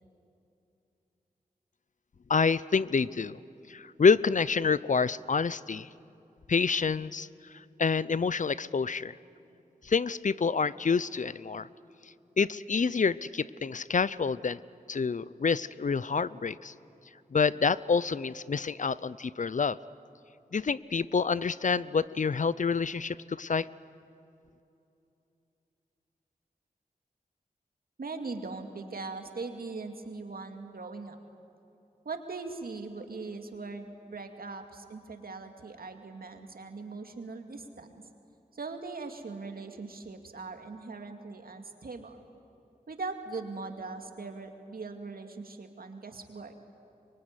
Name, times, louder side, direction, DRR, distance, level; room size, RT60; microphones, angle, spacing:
voice 1, 2.3-3.4 3.7-5.9 6.5-7.3 7.8-9.2 9.8-11.7 12.4-14.6 14.9-16.7 17.3-19.8 20.5-23.7, left 5 dB, 55° left, 18 dB, 0.6 m, -27 dB
voice 2, 28.0-31.2 32.0-37.9 38.5-42.2 42.9-46.5, right 3 dB, 75° right, 5 dB, 2.4 m, -40 dB
24.5 x 23.0 x 9.8 m, 2.8 s
cardioid pair, 45°, 15 cm